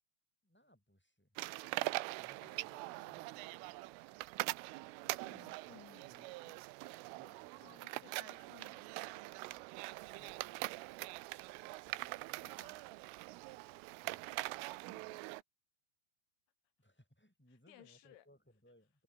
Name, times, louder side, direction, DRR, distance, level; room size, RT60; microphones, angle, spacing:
voice 1, 0.4-1.4 2.1-3.7 7.2-7.9 10.2-10.9 14.0-14.5 16.8-19.0, equal, ahead, 4.0 m, -67 dB
sound 1, 1.4-15.4, right 21 dB, 90° right, 3.3 m, -43 dB
voice 2, 4.9-6.6 7.6-8.9 12.3-12.8 14.9-15.2 17.5-18.3, left 12 dB, 75° left, 4.4 m, -62 dB
Train / Sliding door, 9.9-15.0, right 16 dB, 75° right, 2.6 m, -63 dB
omnidirectional pair, 5.6 m